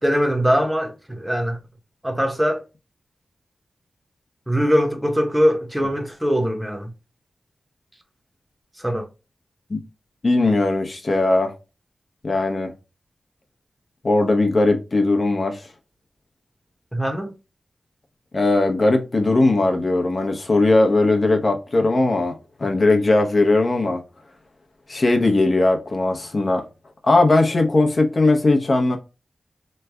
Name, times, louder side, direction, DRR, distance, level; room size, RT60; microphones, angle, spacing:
voice 1, 0.0-1.6 2.0-2.6 4.5-6.9 8.8-9.1 16.9-17.3, equal, 10° right, 0.8 m, -21 dB
voice 2, 10.2-11.5 12.2-12.7 14.0-15.6 18.3-24.0 24.9-26.6 27.0-29.0, left 2 dB, 45° left, 0.8 m, -19 dB
3.2 x 2.2 x 3.4 m
wide cardioid pair, 80°, 0 cm